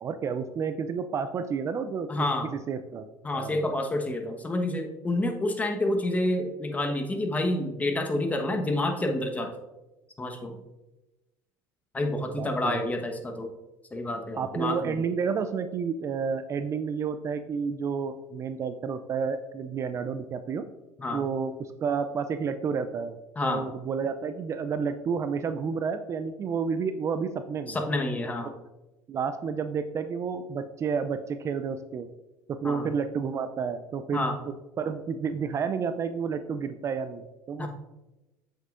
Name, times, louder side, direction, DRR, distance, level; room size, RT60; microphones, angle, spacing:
voice 1, 0.0-2.1 2.5-3.1 3.3-3.6 12.4-12.9 14.4-20.7 21.1-23.2 23.4-27.8 29.1-32.1 32.5-34.2 34.8-37.7, right 6 dB, 35° right, 10 dB, 0.4 m, -30 dB
voice 2, 2.1-2.5 3.2-9.5 10.2-10.6 11.9-13.5 13.9-15.0 21.0-21.2 23.4-23.6 27.7-28.5 32.6-32.9 34.1-34.4 37.6-37.7, left 1 dB, 15° left, 4 dB, 1.1 m, -28 dB
7.9 x 6.3 x 2.5 m, 1.0 s
supercardioid pair, 100°, 9 cm